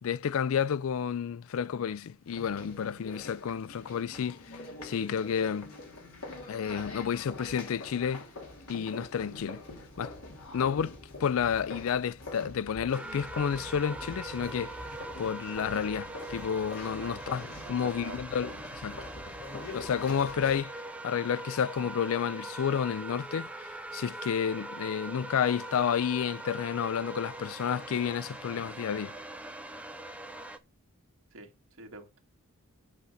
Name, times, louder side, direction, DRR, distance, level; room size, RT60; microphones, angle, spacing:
voice 1, 0.0-4.6 4.8-5.7 6.5-8.3 8.7-9.6 10.0-10.1 10.5-10.9 11.2-14.8 15.2-17.4 17.7-19.1 19.5-29.2, left 7 dB, 70° left, 0.4 m, -31 dB
sound 1, 2.3-20.6, left 2 dB, 85° left, 2.9 m, -45 dB
sound 2, 12.9-30.6, right 2 dB, 5° right, 0.6 m, -42 dB
voice 2, 17.8-18.2 31.3-32.2, right 3 dB, 70° right, 2.0 m, -47 dB
8.3 x 5.1 x 5.7 m
head